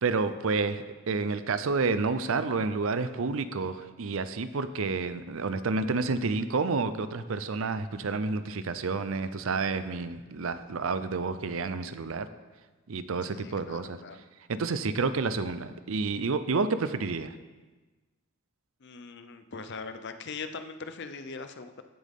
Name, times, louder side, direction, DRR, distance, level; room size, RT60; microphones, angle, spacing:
voice 1, 0.0-12.3 12.9-14.0 14.5-17.3, right 4 dB, 65° right, 12 dB, 0.6 m, -29 dB
voice 2, 13.3-14.2 18.8-21.8, left 4 dB, 50° left, 9 dB, 0.6 m, -41 dB
15.0 x 7.6 x 3.6 m, 1.2 s
head